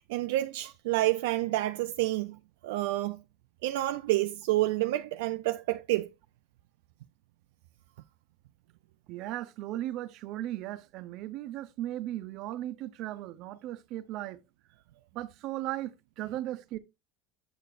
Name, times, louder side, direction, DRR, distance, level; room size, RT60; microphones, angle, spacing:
voice 1, 0.1-2.4 2.6-3.2 3.6-6.1, right 16 dB, 80° right, 0.4 m, -29 dB
voice 2, 9.1-14.4 15.1-16.8, right 14 dB, 55° right, 0.8 m, -37 dB
8.0 x 6.5 x 2.5 m
supercardioid pair, 120°, 0 cm